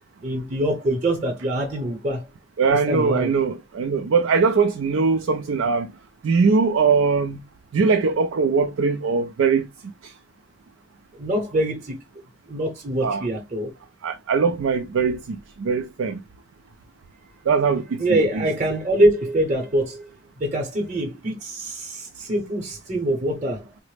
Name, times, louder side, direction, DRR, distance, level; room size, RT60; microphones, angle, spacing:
voice 1, 0.2-2.2 2.7-3.3 11.1-12.0 12.5-13.7 18.0-20.1 20.4-23.7, right 1 dB, 35° right, 0.8 m, -24 dB
voice 2, 2.6-5.9 6.2-7.4 7.7-9.7 13.0-13.2 14.0-16.2 17.5-18.4, right 5 dB, 90° right, 0.4 m, -21 dB
3.9 x 2.0 x 3.2 m
head